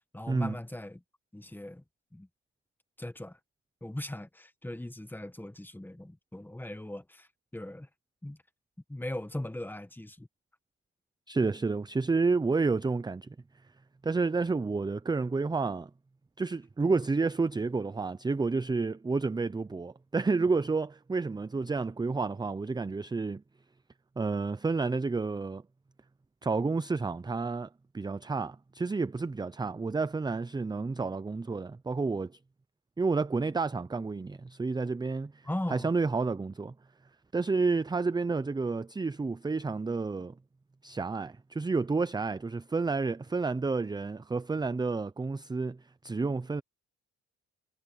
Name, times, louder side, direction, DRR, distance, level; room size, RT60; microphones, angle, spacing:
voice 1, 0.1-1.0 1.3-1.8 2.1-2.3 3.0-3.4 3.8-7.3 7.5-7.9 8.2-8.4 8.9-10.3 35.4-35.9, left 1 dB, 5° left, 1.5 m, -39 dB
voice 2, 11.3-13.3 14.0-15.9 16.4-23.4 24.2-25.6 26.4-32.4 33.0-36.7 37.3-40.3 40.8-46.6, right 4 dB, 15° right, 0.6 m, -30 dB
cardioid pair, 90°, 30 cm